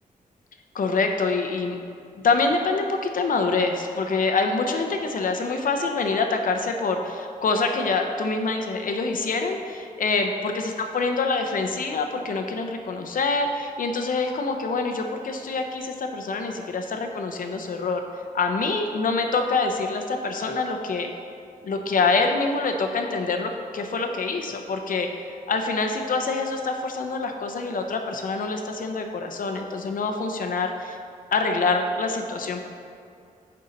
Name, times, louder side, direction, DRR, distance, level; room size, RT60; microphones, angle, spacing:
voice 1, 0.7-1.8 2.2-18.0 18.3-21.1 21.6-25.1 25.5-31.0 31.3-32.7, left 3 dB, 65° left, 4 dB, 0.7 m, -25 dB
6.7 x 5.5 x 5.2 m, 2.4 s
wide cardioid pair, 155°, 15 cm